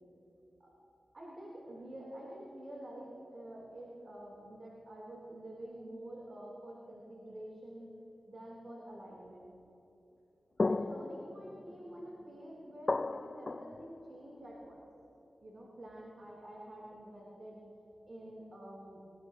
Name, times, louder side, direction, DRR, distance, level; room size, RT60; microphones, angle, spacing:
voice 1, 1.1-7.9 8.3-9.5 10.6-14.8 15.4-17.6 18.1-19.0, right 1 dB, 50° right, -4 dB, 4.3 m, -48 dB
sound 1, 10.6-14.6, left 3 dB, 45° left, 0.4 m, -37 dB
24.5 x 20.5 x 2.2 m, 2.8 s
cardioid pair, 45°, 0 cm